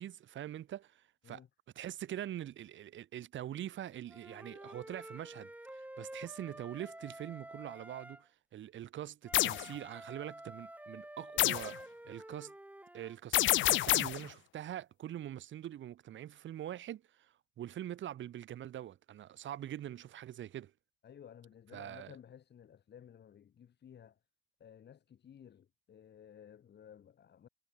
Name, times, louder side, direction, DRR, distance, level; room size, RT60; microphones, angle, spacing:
voice 1, 0.0-1.4 1.8-11.8 12.0-12.5 12.9-20.7 21.7-22.1, right 11 dB, 70° right, 3.6 m, -44 dB
Wind instrument woodwind instrument, 4.1-8.2 9.2-13.2, right 1 dB, 5° right, 5.1 m, -50 dB
sound 1, 9.3-9.6 11.4-11.7 13.3-14.3, left 15 dB, 75° left, 0.5 m, -28 dB
voice 2, 21.0-24.2 24.6-27.5, left 9 dB, 60° left, 7.0 m, -55 dB
cardioid pair, 90°, 20 cm